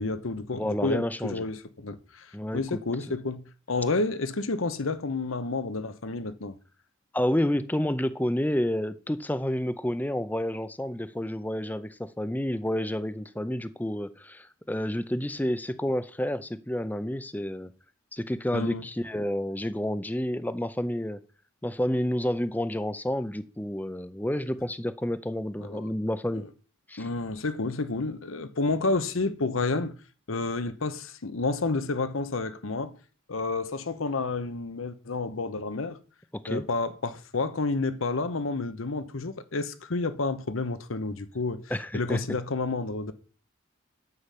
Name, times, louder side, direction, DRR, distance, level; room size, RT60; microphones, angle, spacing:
voice 1, 0.0-6.5 18.5-18.8 25.6-25.9 26.3-26.5 27.0-29.9 30.3-32.9 33.3-36.0 36.5-41.6 41.9-43.1, left 3 dB, 80° left, 1.0 m, -30 dB
voice 2, 0.5-1.4 2.3-2.8 7.1-17.7 18.1-21.2 21.6-26.4 26.9-27.1 36.4-36.6 41.7-42.2, left 1 dB, 10° left, 0.5 m, -29 dB
9.7 x 5.6 x 8.3 m
head